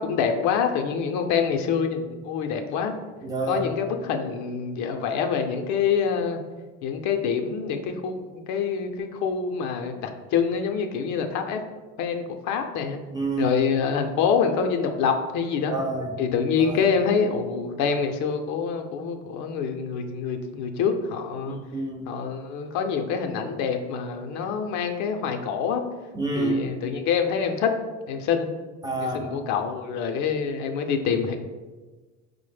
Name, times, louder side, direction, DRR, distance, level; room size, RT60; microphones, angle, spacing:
voice 1, 0.0-2.9 3.5-6.4 6.8-11.6 12.0-13.0 13.4-15.7 16.2-21.6 22.1-25.8 26.3-27.7 28.1-28.5 29.1-31.4, left 6 dB, 60° left, 5 dB, 0.5 m, -26 dB
voice 2, 3.2-3.7 13.1-13.5 15.7-16.1 16.6-16.8 21.5-22.0 26.1-26.7 28.8-29.3, right 2 dB, 15° right, -1 dB, 0.3 m, -28 dB
4.8 x 2.1 x 3.2 m, 1.3 s
supercardioid pair, 105°, 34 cm